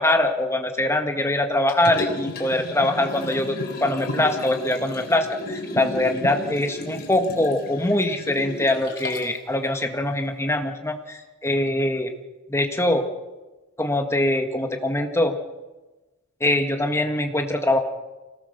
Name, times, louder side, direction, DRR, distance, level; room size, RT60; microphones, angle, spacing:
voice 1, 0.0-12.1 12.5-13.0 13.8-15.3 16.4-17.8, left 1 dB, 10° left, 4 dB, 1.7 m, -23 dB
Liquid, 1.7-9.4 9.8-9.9, left 1 dB, 45° left, 3.7 m, -33 dB
25.5 x 18.0 x 6.7 m, 1.2 s
head